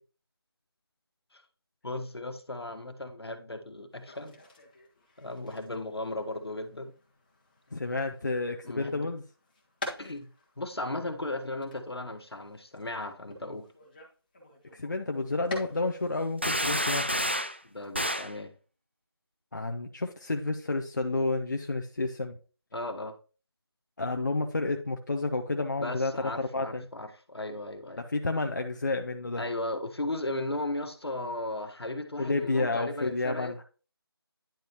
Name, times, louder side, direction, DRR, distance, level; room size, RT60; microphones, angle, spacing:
voice 1, 1.8-4.4 5.2-6.9 8.6-9.1 10.0-10.3 10.6-13.7 17.6-18.5 22.7-23.1 25.8-28.0 29.4-33.5, left 2 dB, 70° left, 1.4 m, -36 dB
sound 1, 3.9-16.0 16.4-18.3, left 2 dB, 20° left, 1.5 m, -48 dB
voice 2, 7.7-9.2 14.7-17.1 19.5-22.4 24.0-26.1 26.4-26.8 28.1-29.4 32.2-33.6, left 3 dB, 45° left, 0.7 m, -30 dB
sound 2, 16.4-17.6 17.9-18.3, equal, 25° right, 0.3 m, -29 dB
10.0 x 5.2 x 3.0 m
figure-of-eight pair, 170°, 14 cm